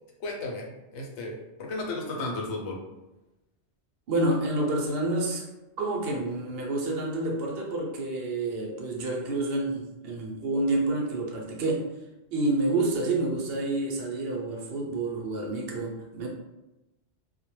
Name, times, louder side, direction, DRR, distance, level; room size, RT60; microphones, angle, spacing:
voice 1, 0.2-2.8, left 2 dB, 85° left, 0 dB, 0.9 m, -34 dB
voice 2, 4.1-5.5 5.8-11.9 12.3-16.3, right 2 dB, 70° right, -1 dB, 0.8 m, -28 dB
2.2 x 2.1 x 3.0 m, 0.98 s
omnidirectional pair, 1.1 m